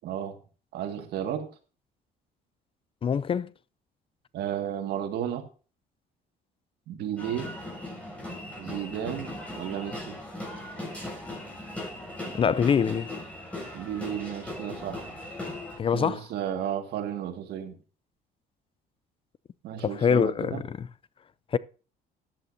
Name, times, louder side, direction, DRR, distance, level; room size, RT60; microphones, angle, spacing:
voice 1, 0.0-0.4 0.7-1.5 4.3-5.4 6.9-7.5 8.6-10.2 13.7-15.1 15.9-17.8 19.6-20.6, right 10 dB, 75° right, 2.0 m, -33 dB
voice 2, 3.0-3.5 12.3-13.1 15.8-16.2 19.8-20.9 21.5-21.6, left 7 dB, 30° left, 0.4 m, -24 dB
sound 1, 7.2-15.8, left 1 dB, 10° left, 7.0 m, -38 dB
13.5 x 10.5 x 2.7 m
cardioid pair, 110°, 17 cm